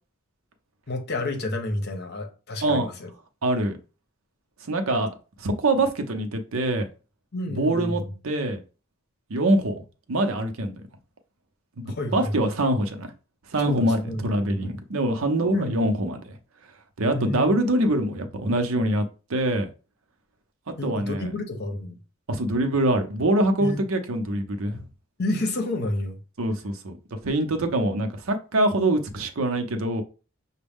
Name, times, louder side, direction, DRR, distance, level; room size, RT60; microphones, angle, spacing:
voice 1, 0.9-3.1 7.3-8.1 11.9-12.5 13.7-14.2 14.5-14.7 15.5-15.9 17.1-17.6 20.8-22.0 23.6-23.8 25.2-26.1, left 1 dB, 50° left, 0.9 m, -30 dB
voice 2, 3.4-3.8 4.6-5.1 5.4-6.9 7.6-8.6 9.3-9.8 10.1-10.7 11.8-13.1 13.5-16.4 17.0-19.7 20.8-21.3 22.3-24.8 26.4-30.0, right 1 dB, 75° right, 0.7 m, -24 dB
6.1 x 2.2 x 3.5 m
head